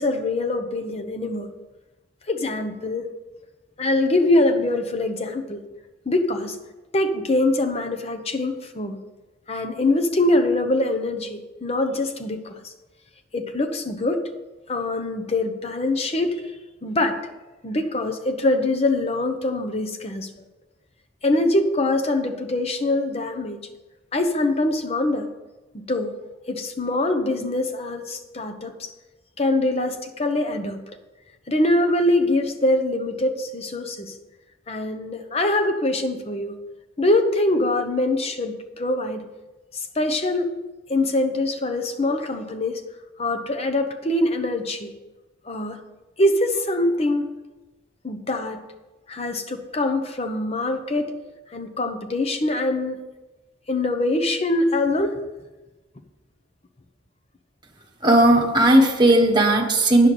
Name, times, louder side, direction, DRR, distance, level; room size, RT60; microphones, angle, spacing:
voice 1, 0.0-1.5 2.3-3.1 3.8-5.6 6.1-6.6 6.9-9.0 9.5-12.6 13.3-14.2 14.7-16.4 16.8-17.2 17.6-20.3 21.2-23.6 24.1-25.3 25.7-26.1 26.5-28.9 29.4-30.8 31.5-34.2 34.7-36.6 37.0-39.2 39.7-40.5 40.9-42.8 43.2-44.9 45.5-45.8 46.2-47.3 48.0-48.6 49.1-51.2 51.5-53.0 53.7-55.2, left 2 dB, 30° left, 6 dB, 0.8 m, -23 dB
voice 2, 58.0-60.1, right 1 dB, 25° right, 1 dB, 1.4 m, -16 dB
9.8 x 5.7 x 6.7 m, 1.1 s
head